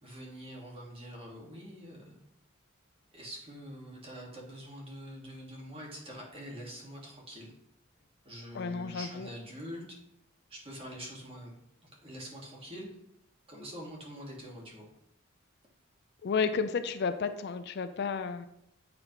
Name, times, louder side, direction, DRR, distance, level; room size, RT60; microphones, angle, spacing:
voice 1, 0.0-2.2 3.1-7.5 8.2-10.0 10.5-11.5 11.8-12.9 13.5-14.9, equal, 30° right, -2 dB, 1.6 m, -45 dB
voice 2, 8.5-9.3 16.2-18.5, left 5 dB, 55° left, 10 dB, 0.4 m, -32 dB
8.1 x 5.2 x 2.9 m, 0.77 s
head